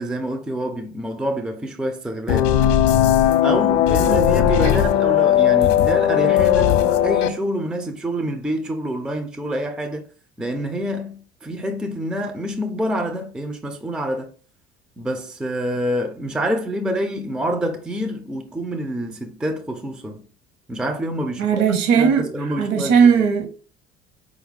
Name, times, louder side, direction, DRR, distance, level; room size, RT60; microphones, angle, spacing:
voice 1, 0.0-2.6 3.4-10.1 10.4-14.3 15.0-20.2 20.7-21.6 21.9-23.3, equal, 5° right, 0.5 m, -27 dB
sound 1, 2.3-7.3, left 11 dB, 50° left, 0.5 m, -17 dB
voice 2, 21.4-23.5, right 6 dB, 55° right, 1.1 m, -18 dB
4.7 x 2.5 x 3.2 m
figure-of-eight pair, 60°, 33 cm